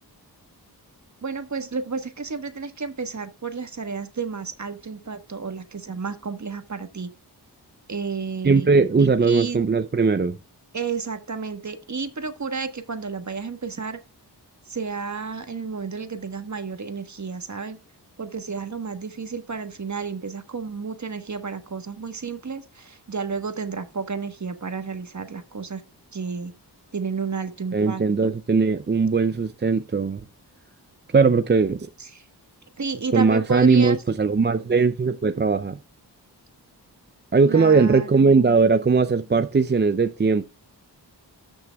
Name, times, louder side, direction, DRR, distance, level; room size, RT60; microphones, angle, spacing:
voice 1, 1.2-7.1 7.9-8.7 9.0-9.6 10.7-14.0 14.7-17.8 18.2-25.8 26.1-26.5 26.9-28.4 32.0-32.2 32.8-34.0 37.4-38.7, right 5 dB, 45° right, 1.3 m, -31 dB
voice 2, 8.4-10.4 27.7-30.2 31.1-31.9 33.1-35.8 37.3-40.5, right 4 dB, 25° right, 0.5 m, -19 dB
13.5 x 6.2 x 2.3 m
wide cardioid pair, 85°, 40 cm